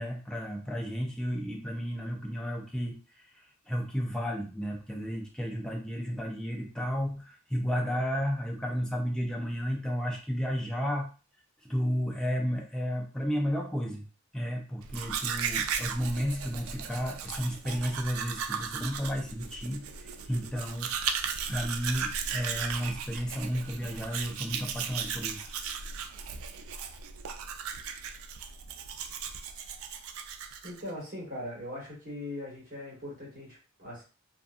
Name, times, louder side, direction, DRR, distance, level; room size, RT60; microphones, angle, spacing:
voice 1, 0.0-3.0 3.7-11.1 11.6-14.0 14.3-25.6, equal, 5° left, 0 dB, 0.6 m, -33 dB
Domestic sounds home sounds, 14.8-30.9, right 7 dB, 75° right, 0.3 m, -36 dB
voice 2, 30.6-34.0, left 1 dB, 45° right, -5 dB, 1.5 m, -40 dB
2.6 x 2.5 x 2.4 m, 0.35 s
head